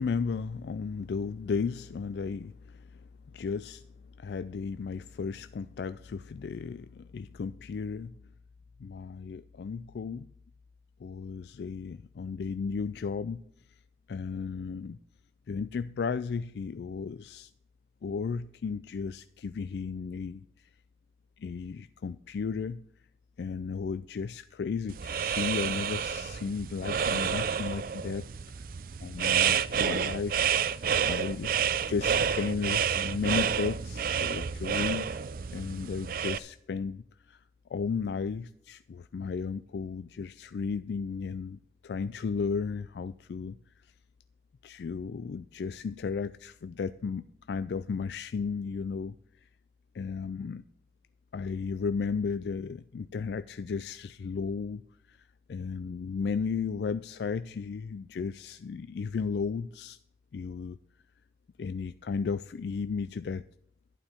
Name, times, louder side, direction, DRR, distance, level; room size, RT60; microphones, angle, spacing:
voice 1, 0.0-3.8 4.2-8.2 8.8-10.3 11.0-13.4 14.1-15.0 15.5-17.5 18.0-20.7 21.4-22.8 23.4-28.2 29.0-31.6 31.8-35.1 35.5-37.4 37.7-43.6 44.6-49.2 49.4-49.5 49.9-50.7 51.3-54.8 55.1-55.2 55.5-60.0 60.3-60.8 61.6-63.4, left 5 dB, 70° left, 0.3 m, -34 dB
sound 1, 24.9-36.4, right 7 dB, 50° right, 0.4 m, -29 dB
11.5 x 11.0 x 4.4 m
head